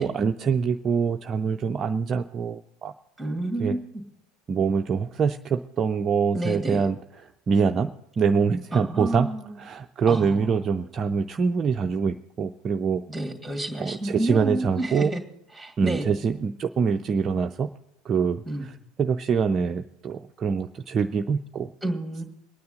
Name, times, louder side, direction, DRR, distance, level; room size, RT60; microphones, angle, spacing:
voice 1, 0.0-2.9 3.6-3.8 4.5-7.0 7.5-7.9 8.2-9.3 9.6-13.0 13.8-15.1 15.8-17.7 18.1-18.7 19.0-21.7, right 6 dB, 30° right, 7 dB, 0.4 m, -24 dB
voice 2, 3.2-3.8 6.3-6.9 8.7-9.6 10.1-10.6 13.1-15.2 15.5-16.1 18.5-18.7 21.8-22.2, right 1 dB, ahead, 3 dB, 2.3 m, -30 dB
23.5 x 9.4 x 3.9 m, 0.78 s
figure-of-eight pair, 70°, 0 cm